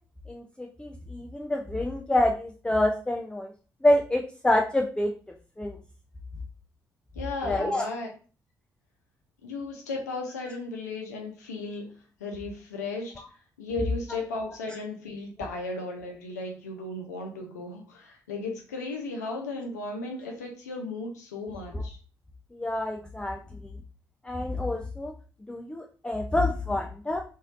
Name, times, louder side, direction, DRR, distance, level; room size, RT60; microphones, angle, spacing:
voice 1, 0.3-3.5 3.8-5.1 5.6-5.8 7.4-7.9 21.7-21.8 22.5-23.7 24.2-25.1 25.5-27.2, left 1 dB, 10° left, 2 dB, 0.4 m, -27 dB
voice 2, 7.1-8.1 9.4-11.9 12.2-13.1 13.6-22.0, left 3 dB, 85° left, 2 dB, 0.5 m, -35 dB
3.1 x 2.6 x 2.5 m, 0.37 s
figure-of-eight pair, 40°, 9 cm